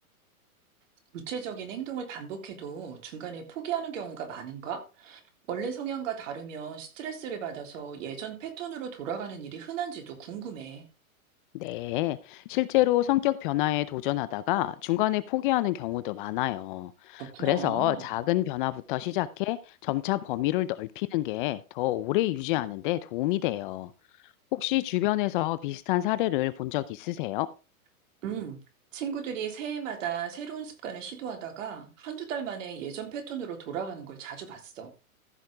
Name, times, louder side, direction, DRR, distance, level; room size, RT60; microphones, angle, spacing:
voice 1, 1.1-5.2 5.5-10.8 17.2-18.1 28.2-28.6 28.9-34.9, right 8 dB, 60° right, 3.6 m, -36 dB
voice 2, 11.5-23.9 24.5-27.5, left 16 dB, 35° left, 0.6 m, -28 dB
14.5 x 6.5 x 3.5 m
hypercardioid pair, 135°, 44 cm